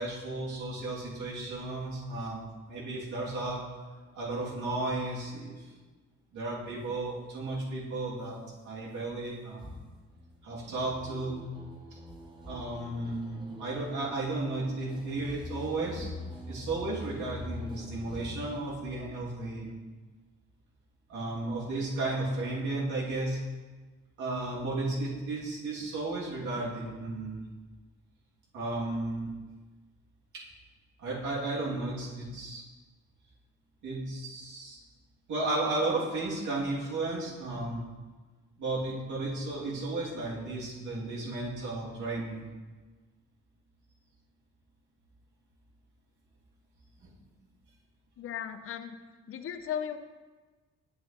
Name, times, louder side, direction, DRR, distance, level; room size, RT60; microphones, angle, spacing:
voice 1, 0.0-2.4 2.7-3.9 4.1-5.6 6.3-8.4 8.6-9.7 10.4-11.4 11.9-12.0 12.5-16.1 16.5-19.8 21.1-23.4 24.2-27.4 28.5-29.3 30.3-30.4 31.0-32.6 33.8-34.8 35.3-37.9 38.6-42.4 47.0-47.1, right 2 dB, 75° right, -6 dB, 2.3 m, -34 dB
sound 1, 9.6-18.6, left 1 dB, 15° right, 1.8 m, -44 dB
voice 2, 48.2-49.0 49.3-50.0, left 9 dB, 45° left, 10 dB, 0.5 m, -36 dB
8.0 x 7.4 x 2.9 m, 1.3 s
cardioid pair, 90°, 30 cm